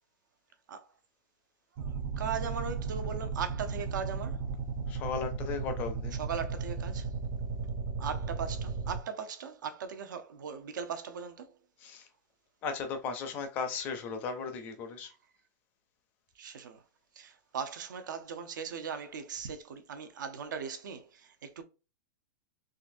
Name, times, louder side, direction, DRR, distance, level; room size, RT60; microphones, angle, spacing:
sound 1, 1.8-9.0, right 4 dB, 30° right, 0.5 m, -35 dB
voice 1, 1.8-4.4 6.2-7.1 8.0-11.5 16.4-16.8 17.2-21.6, right 6 dB, 85° right, 0.7 m, -39 dB
voice 2, 4.9-6.2 11.8-12.1 12.6-15.1, left 5 dB, 20° left, 0.4 m, -36 dB
3.9 x 2.5 x 2.5 m
supercardioid pair, 180°, 10 cm